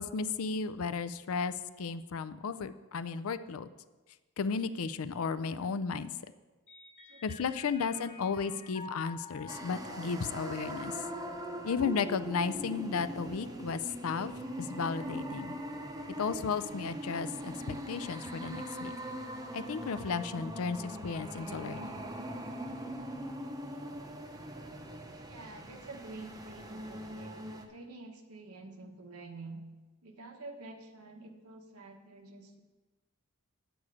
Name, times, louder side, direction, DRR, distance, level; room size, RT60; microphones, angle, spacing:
voice 1, 0.0-3.7 4.4-6.2 7.2-11.0 11.6-15.5 16.2-18.9 19.5-22.0, left 5 dB, 70° left, 13 dB, 0.4 m, -34 dB
Mallet percussion, 6.7-14.4, left 2 dB, 35° left, 1.2 m, -50 dB
voice 2, 7.6-8.1 8.5-8.6 25.3-27.4 27.7-29.6 30.0-32.6, right 3 dB, 85° right, 4 dB, 1.2 m, -48 dB
sound 1, 9.5-27.7, equal, 15° right, 0.7 m, -41 dB
8.6 x 8.1 x 4.9 m, 1.2 s
head